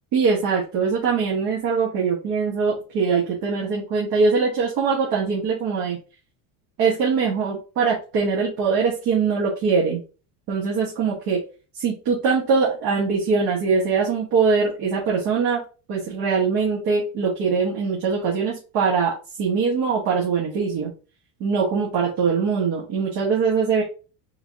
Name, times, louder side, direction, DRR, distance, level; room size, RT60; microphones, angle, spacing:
voice 1, 0.1-6.0 6.8-10.0 10.5-11.4 11.8-15.6 15.9-20.9 21.4-23.8, right 5 dB, 55° right, -4 dB, 1.5 m, -22 dB
3.9 x 3.7 x 2.7 m, 0.33 s
cardioid pair, 175°, 45 cm